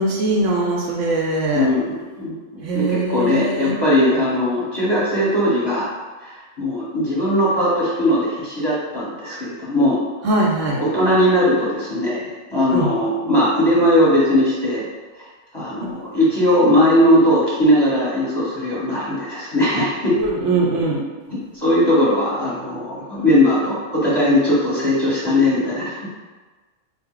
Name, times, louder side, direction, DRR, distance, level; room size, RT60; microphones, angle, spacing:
voice 1, 0.0-1.7 2.6-3.8 10.2-10.8 12.7-12.9 20.2-21.0, right 2 dB, 75° right, -1 dB, 0.9 m, -21 dB
voice 2, 1.5-5.9 6.2-10.0 10.8-14.8 15.2-15.3 15.5-20.2 21.5-26.1, left 1 dB, 20° left, -7 dB, 0.9 m, -19 dB
4.1 x 2.1 x 3.7 m, 1.3 s
omnidirectional pair, 1.3 m